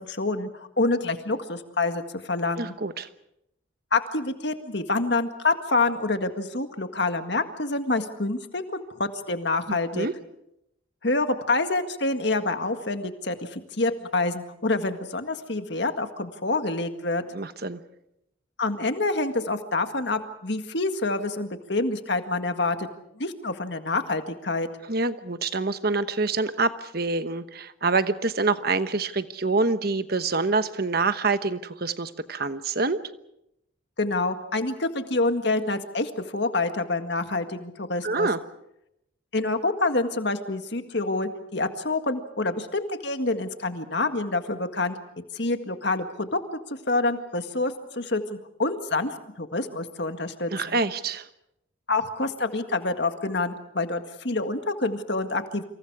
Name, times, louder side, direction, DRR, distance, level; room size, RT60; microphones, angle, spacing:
voice 1, 0.0-2.7 3.9-10.1 11.0-17.2 18.6-22.9 23.2-24.7 34.0-38.3 39.3-44.9 45.3-46.4 46.9-50.8 51.9-55.6, left 2 dB, 55° left, 7 dB, 1.9 m, -27 dB
voice 2, 2.6-3.1 9.7-10.1 17.3-17.8 24.9-33.0 38.0-38.4 50.5-51.3, right 3 dB, 50° right, 11 dB, 1.1 m, -26 dB
27.5 x 27.0 x 4.9 m, 0.82 s
head